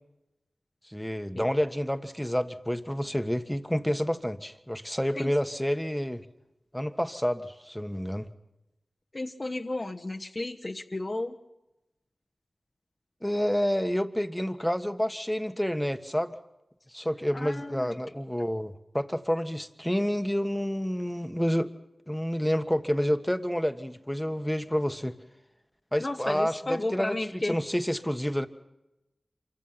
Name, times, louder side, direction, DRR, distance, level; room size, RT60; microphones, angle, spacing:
voice 1, 0.9-6.2 6.7-8.3 13.2-16.3 16.9-21.7 22.1-25.1 25.9-28.5, equal, 5° left, 8 dB, 1.5 m, -29 dB
voice 2, 9.1-11.4 17.3-17.9 26.0-27.6, left 2 dB, 40° left, 3 dB, 1.1 m, -33 dB
27.5 x 24.0 x 5.8 m, 0.93 s
wide cardioid pair, 60°, 0 cm